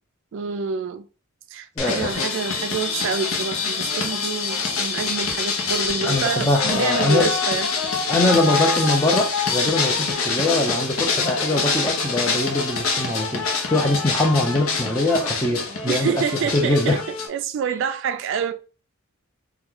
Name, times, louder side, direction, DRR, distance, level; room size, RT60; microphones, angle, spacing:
voice 1, 0.3-1.0 1.5-7.7 15.9-17.0 17.3-18.5, right 6 dB, 60° right, 0.3 m, -27 dB
sound 1, 1.8-17.3, left 4 dB, 75° left, 0.7 m, -25 dB
voice 2, 1.8-2.1 6.0-7.3 8.1-13.4 13.7-16.2 16.5-17.0, left 2 dB, 15° left, 0.6 m, -22 dB
2.9 x 2.3 x 3.7 m
head